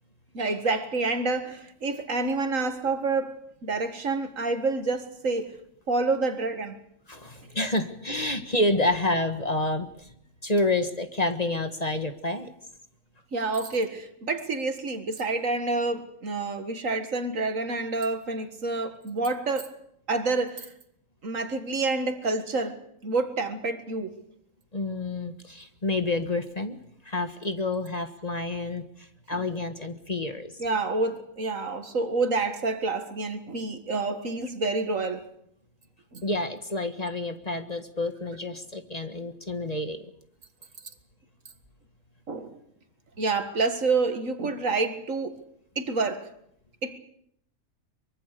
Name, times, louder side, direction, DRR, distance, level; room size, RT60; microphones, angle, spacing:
voice 1, 0.3-5.5 5.9-6.8 13.3-19.8 20.1-20.7 21.2-22.8 23.0-24.1 29.3-29.4 30.6-35.2 36.1-36.2 42.3-42.6 43.2-45.4 45.8-46.3 46.8-47.0, right 3 dB, 70° right, 2.2 m, -28 dB
voice 2, 7.1-10.1 10.4-12.5 24.7-26.8 27.0-30.6 36.2-40.0, left 2 dB, 30° left, 1.6 m, -29 dB
24.0 x 23.0 x 6.8 m
omnidirectional pair, 1.4 m